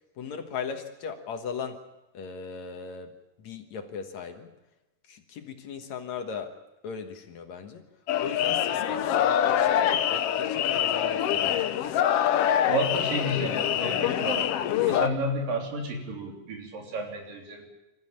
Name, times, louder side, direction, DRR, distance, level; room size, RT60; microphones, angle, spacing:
voice 1, 0.2-1.8 2.1-3.1 3.4-4.5 5.1-6.5 6.8-7.8 8.2-11.6, left 6 dB, 60° left, 6 dB, 2.5 m, -37 dB
sound 1, 8.1-15.1, left 10 dB, 90° left, 1.3 m, -25 dB
voice 2, 12.6-14.5 14.9-17.7, right 1 dB, 80° right, 1 dB, 5.1 m, -31 dB
26.0 x 14.5 x 8.8 m, 0.99 s
omnidirectional pair, 3.9 m